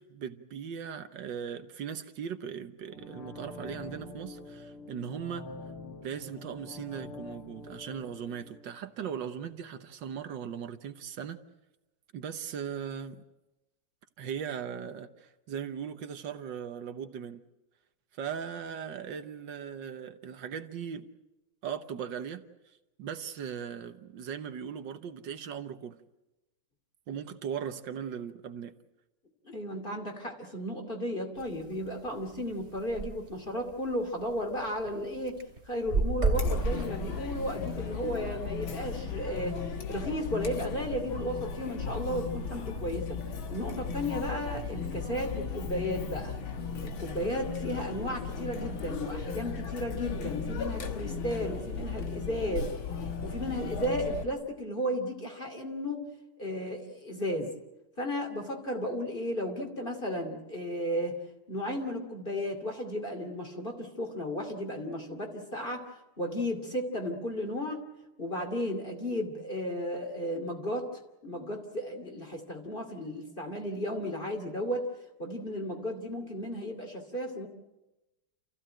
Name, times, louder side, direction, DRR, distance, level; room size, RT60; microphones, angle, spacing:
voice 1, 0.0-5.5 6.0-11.4 12.1-13.2 14.2-17.4 18.1-21.1 21.6-26.0 27.1-28.7, right 8 dB, 65° right, 1.6 m, -38 dB
sound 1, 2.8-9.7 10.0-10.1, left 2 dB, 85° left, 3.1 m, -46 dB
voice 2, 29.4-43.2 43.5-46.4 46.8-52.7 53.2-56.0 56.4-57.5 58.0-61.2 61.5-65.9 66.2-67.8 68.2-70.9 71.2-74.9 75.2-77.5, equal, 25° left, 2.7 m, -34 dB
sound 2, 31.4-31.6 32.1-32.2 32.4-32.5 32.7-33.1 33.7-33.8 34.2-34.9 35.3-37.5, right 3 dB, 35° right, 2.5 m, -29 dB
Chatter, 36.3-54.2, left 5 dB, 70° left, 2.3 m, -36 dB
28.5 x 15.0 x 9.0 m
omnidirectional pair, 2.3 m